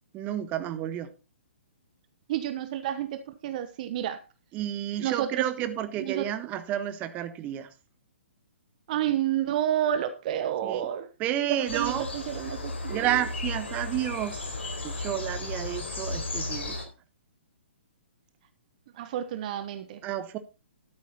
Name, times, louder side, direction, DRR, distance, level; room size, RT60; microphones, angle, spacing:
voice 1, 0.1-1.1 4.5-7.7 10.6-10.9 11.2-12.1 12.9-14.6 14.8-16.7 20.0-20.4, right 12 dB, 25° right, 1.2 m, -31 dB
voice 2, 2.3-4.2 5.0-5.7 6.0-6.3 8.9-11.1 11.4-13.3 18.9-20.0, right 11 dB, 40° right, 0.9 m, -30 dB
sound 1, 11.7-16.8, left 2 dB, 70° left, 4.2 m, -34 dB
12.5 x 8.9 x 4.1 m
figure-of-eight pair, 125°, 6 cm